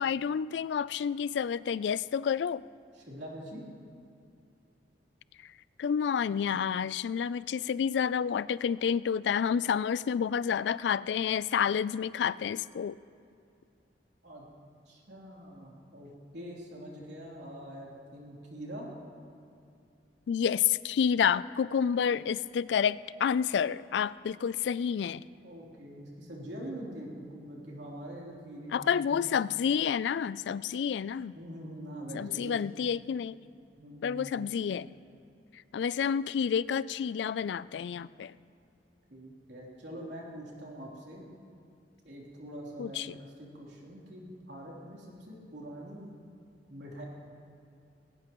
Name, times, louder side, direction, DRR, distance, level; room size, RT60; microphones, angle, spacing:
voice 1, 0.0-2.6 5.8-13.0 20.3-25.2 28.7-31.3 32.1-33.4 34.0-34.9 35.7-38.3 42.8-43.1, left 7 dB, 75° left, 18 dB, 0.3 m, -29 dB
voice 2, 2.9-3.6 14.2-14.4 14.8-18.9 25.4-29.4 31.3-32.8 33.8-34.5 39.1-41.2 42.0-46.1 46.7-47.0, right 1 dB, 75° right, -3 dB, 3.3 m, -44 dB
19.5 x 18.0 x 3.0 m, 2.5 s
head